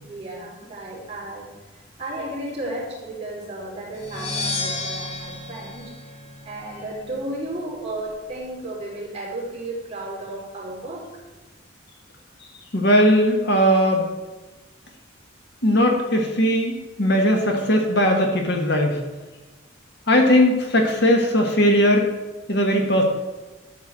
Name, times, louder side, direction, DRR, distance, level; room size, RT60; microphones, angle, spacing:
voice 1, 0.0-1.5 1.7-5.9 6.4-11.1, right 1 dB, 30° right, -6 dB, 4.1 m, -33 dB
sound 1, 3.9-6.8, left 2 dB, 35° left, 1.6 m, -31 dB
voice 2, 12.7-14.1 15.6-19.0 20.1-22.1 22.5-23.0, equal, 55° left, 2 dB, 1.7 m, -18 dB
12.5 x 4.7 x 7.5 m, 1.2 s
head